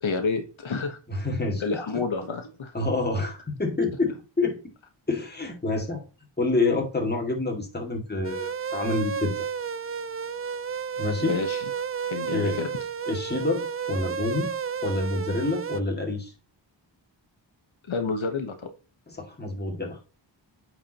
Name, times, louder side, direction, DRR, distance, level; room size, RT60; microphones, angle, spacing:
voice 1, 0.0-1.0 1.6-2.7 11.2-11.6 12.1-12.7 17.9-18.7, left 4 dB, 80° left, 6 dB, 1.2 m, -29 dB
voice 2, 1.1-1.6 2.7-4.6 5.1-6.0 6.4-9.5 11.0-11.4 12.3-12.6 13.1-14.5 14.8-16.3 19.1-20.0, left 3 dB, 20° left, 1 dB, 2.1 m, -27 dB
sound 1, 8.2-15.8, right 7 dB, 30° right, 0.4 m, -32 dB
8.9 x 4.8 x 2.9 m, 0.33 s
wide cardioid pair, 100°, 46 cm